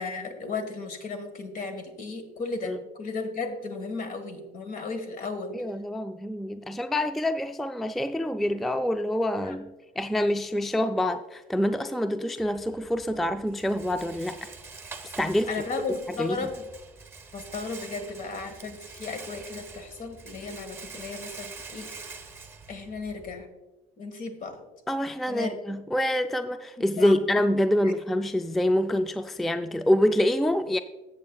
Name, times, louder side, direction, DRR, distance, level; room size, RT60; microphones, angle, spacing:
voice 1, 0.0-5.5 9.4-9.6 15.5-16.6 17.3-22.2 22.7-23.5 24.0-24.6 25.3-25.5 26.9-27.2 27.8-27.9, left 4 dB, 55° left, 7 dB, 1.5 m, -35 dB
voice 2, 5.5-14.5 15.2-15.5 16.2-16.4 24.9-30.8, left 1 dB, ahead, 10 dB, 0.3 m, -26 dB
Rattle, 12.4-23.4, right 4 dB, 15° right, 0.9 m, -45 dB
14.0 x 7.5 x 2.3 m, 1.1 s
supercardioid pair, 90°, 17 cm